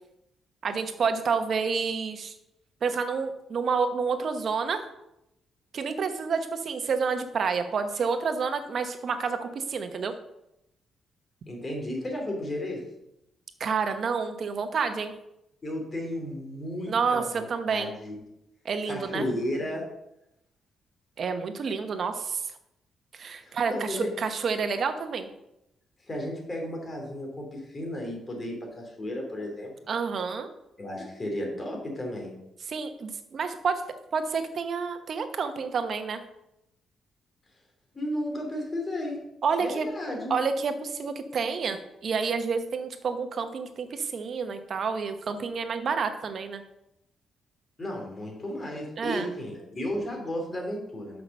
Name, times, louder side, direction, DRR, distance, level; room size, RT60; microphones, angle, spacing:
voice 1, 0.6-2.3 2.8-4.9 5.7-10.1 13.6-15.1 16.9-17.9 18.6-19.3 21.2-22.5 23.1-25.3 29.9-30.5 32.7-33.9 34.1-36.2 39.4-39.9 40.3-46.6 49.0-49.3, right 5 dB, 55° right, 8 dB, 1.0 m, -29 dB
voice 2, 11.5-12.8 15.6-18.2 18.9-19.8 23.4-24.1 26.1-29.7 30.8-32.3 37.9-39.2 39.6-40.3 47.8-51.2, left 1 dB, 30° left, 1 dB, 2.9 m, -33 dB
5.9 x 5.8 x 6.6 m, 0.85 s
cardioid pair, 90°, 0 cm